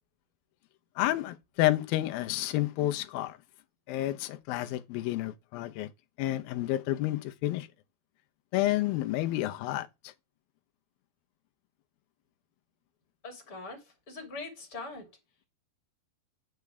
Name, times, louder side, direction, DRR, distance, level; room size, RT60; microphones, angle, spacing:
voice 1, 1.0-3.4 3.9-5.9 6.2-7.7 8.5-10.1, left 15 dB, 75° left, 2.5 m, -30 dB
voice 2, 13.2-15.1, left 3 dB, 35° left, 3.1 m, -42 dB
9.5 x 3.7 x 6.7 m
omnidirectional pair, 4.7 m